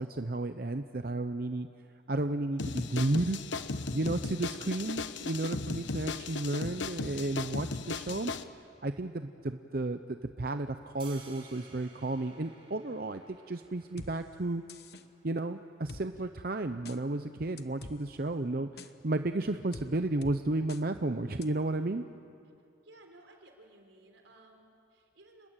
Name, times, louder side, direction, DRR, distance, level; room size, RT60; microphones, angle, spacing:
voice 1, 0.0-1.7 2.1-3.4 3.9-14.6 15.2-22.0, right 2 dB, 50° right, 8 dB, 0.7 m, -33 dB
sound 1, 2.6-8.4, left 3 dB, 80° left, 1.0 m, -36 dB
sound 2, 11.0-17.1, right 4 dB, 30° right, 3.7 m, -57 dB
sound 3, 14.0-14.1 14.7-15.0 15.9-16.0 16.9-17.0 17.6-18.0 18.8-18.9 19.7-19.9 20.2-20.4 20.7-20.8 21.4-21.5, left 3 dB, 55° left, 1.1 m, -45 dB
voice 2, 22.8-25.5, right 2 dB, 85° right, 3 dB, 4.4 m, -57 dB
30.0 x 21.0 x 9.1 m, 2.5 s
head